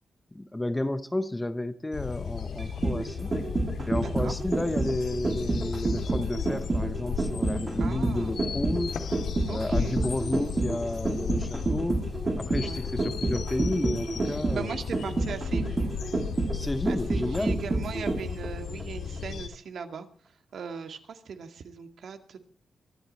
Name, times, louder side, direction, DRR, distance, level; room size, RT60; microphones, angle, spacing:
voice 1, 0.3-3.4 3.8-8.9 9.5-12.0 12.4-14.8 16.5-17.6, left 1 dB, 10° left, 0.7 m, -31 dB
sound 1, 1.9-19.5, left 6 dB, 60° left, 2.0 m, -35 dB
sound 2, 2.6-18.5 18.8-18.9, right 2 dB, 25° right, 2.5 m, -29 dB
voice 2, 3.9-4.3 7.8-8.3 9.5-10.0 12.6-12.8 14.5-15.9 16.9-20.1 20.5-22.4, right 6 dB, 60° right, 2.1 m, -39 dB
24.0 x 12.5 x 4.3 m
wide cardioid pair, 175°, 0 cm